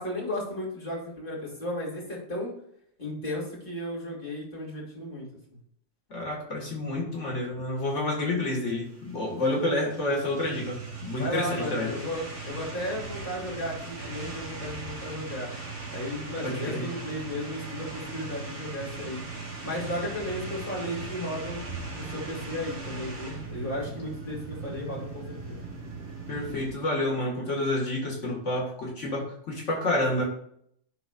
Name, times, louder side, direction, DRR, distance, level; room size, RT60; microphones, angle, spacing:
voice 1, 0.0-2.5 3.0-5.3 11.1-15.5 15.9-19.2 19.6-21.6 22.0-25.6, left 1 dB, 45° left, -4 dB, 3.0 m, -34 dB
voice 2, 6.1-11.9 16.4-16.9 26.3-30.2, left 1 dB, 75° left, -3 dB, 2.0 m, -29 dB
sound 1, 8.7-26.7, right 3 dB, 45° right, 2.3 m, -39 dB
11.5 x 4.0 x 2.4 m, 0.68 s
omnidirectional pair, 1.3 m